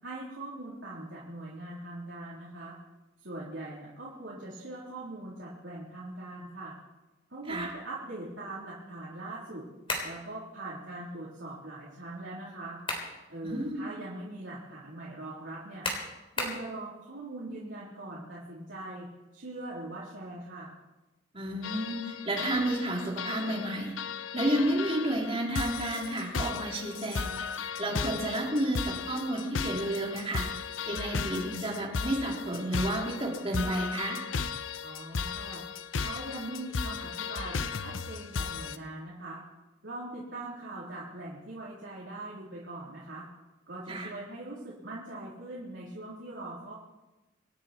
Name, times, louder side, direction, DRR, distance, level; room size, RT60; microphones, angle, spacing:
voice 1, 0.0-2.7 3.2-6.8 7.3-9.6 10.0-12.8 13.3-15.9 16.4-19.1 19.3-20.7 34.8-35.6 36.0-39.4 39.8-43.3 43.7-46.7, right 2 dB, 75° right, -7 dB, 3.6 m, -41 dB
sound 1, 9.9-10.2 12.5-13.2 13.6-13.7 15.8-16.7, left 2 dB, 30° left, 3.6 m, -33 dB
voice 2, 13.4-13.9 21.3-24.0 24.3-34.2 43.9-44.1, right 1 dB, 30° right, -2 dB, 3.4 m, -31 dB
sound 2, 21.6-38.8, left 5 dB, 90° left, 0.7 m, -36 dB
27.0 x 9.7 x 4.4 m, 1.1 s
head